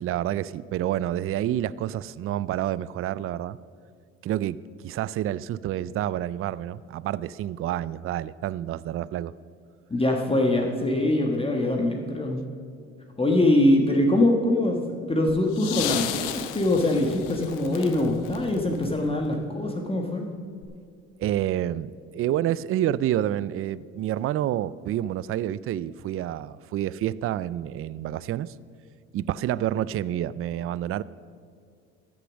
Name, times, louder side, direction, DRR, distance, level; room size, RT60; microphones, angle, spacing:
voice 1, 0.0-3.6 4.2-9.3 21.2-28.5 29.1-31.0, right 12 dB, 45° right, 19 dB, 0.4 m, -28 dB
voice 2, 9.9-12.4 13.2-20.3, left 1 dB, 15° left, 1 dB, 1.4 m, -23 dB
sound 1, 15.3-19.5 20.6-20.7, left 11 dB, 80° left, 0.8 m, -34 dB
13.5 x 6.8 x 6.3 m, 2.2 s
supercardioid pair, 75°, 31 cm